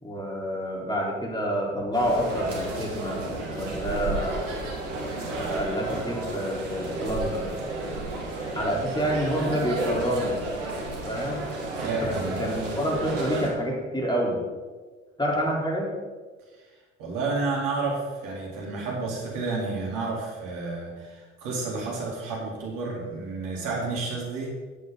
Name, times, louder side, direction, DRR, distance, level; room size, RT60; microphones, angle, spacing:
voice 1, 0.0-3.2 3.5-4.5 5.1-7.5 8.5-10.4 11.1-11.5 12.0-14.4 15.2-15.9, equal, 10° left, -3 dB, 4.1 m, -28 dB
sound 1, 1.9-13.5, right 2 dB, 85° right, 2.1 m, -32 dB
voice 2, 11.7-12.5 16.5-24.5, right 3 dB, 65° right, -3 dB, 3.8 m, -31 dB
14.0 x 8.0 x 4.0 m, 1.4 s
hypercardioid pair, 60°, 36 cm